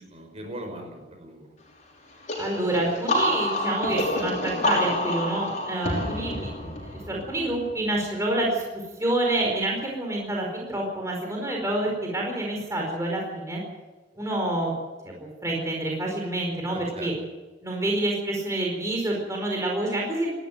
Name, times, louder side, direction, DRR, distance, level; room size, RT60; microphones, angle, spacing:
voice 1, 0.0-1.6 6.0-6.3 16.7-17.1, right 1 dB, 35° right, 4 dB, 5.5 m, -40 dB
sound 1, 2.3-7.8, left 1 dB, 45° left, 6.2 m, -28 dB
voice 2, 2.4-6.5 6.8-8.6 9.0-13.6 14.2-14.7 15.0-17.1 17.6-20.3, right 1 dB, 20° right, -1 dB, 4.7 m, -27 dB
19.5 x 15.0 x 9.3 m, 1.2 s
head